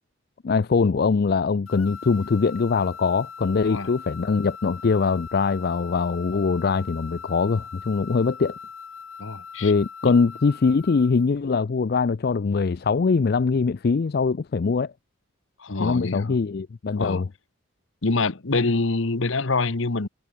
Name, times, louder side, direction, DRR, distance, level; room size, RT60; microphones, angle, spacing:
voice 1, 0.4-8.5 9.6-14.9 15.8-17.3, left 4 dB, 45° left, 0.4 m, -22 dB
sound 1, 1.7-11.2, left 6 dB, 90° left, 2.1 m, -41 dB
voice 2, 9.2-9.7 10.0-10.1 15.6-16.3 16.9-17.2 18.0-20.1, left 3 dB, 65° left, 1.1 m, -25 dB
head